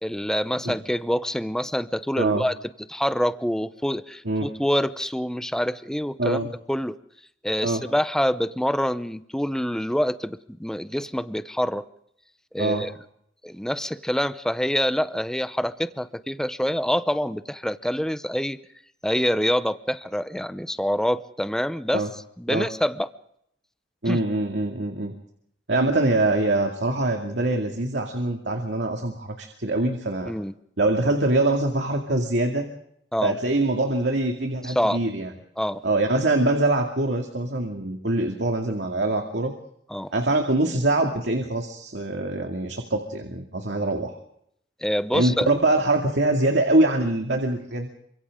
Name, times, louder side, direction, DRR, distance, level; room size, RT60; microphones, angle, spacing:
voice 1, 0.0-2.5 2.9-6.4 6.7-7.0 7.4-11.8 12.5-12.9 13.4-18.6 19.0-22.0 22.4-23.1 24.0-24.2 30.3-30.5 33.1-33.4 34.7-35.0 35.6-35.8 39.9-40.1 44.8-45.5, equal, 5° left, 12 dB, 0.7 m, -26 dB
voice 2, 6.2-6.5 7.6-7.8 12.6-12.9 21.9-22.1 22.5-22.7 24.0-25.1 25.7-30.3 30.8-32.7 33.2-35.3 35.8-39.5 40.1-44.1 45.1-47.9, right 2 dB, 80° right, 3 dB, 2.3 m, -24 dB
28.0 x 25.0 x 3.7 m, 0.71 s
head